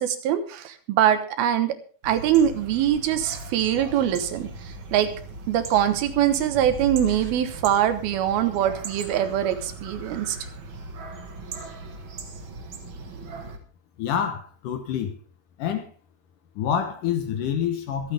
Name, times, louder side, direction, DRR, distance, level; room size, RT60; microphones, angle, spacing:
voice 1, 0.0-1.7 2.0-4.5 4.9-5.1 5.5-10.4, right 10 dB, 75° right, 10 dB, 2.9 m, -23 dB
sound 1, 2.0-13.6, right 2 dB, 60° right, 1.3 m, -38 dB
voice 2, 14.0-15.1 15.6-15.9 16.6-18.1, left 8 dB, 70° left, 8 dB, 2.2 m, -27 dB
24.5 x 9.1 x 3.4 m, 0.38 s
omnidirectional pair, 4.5 m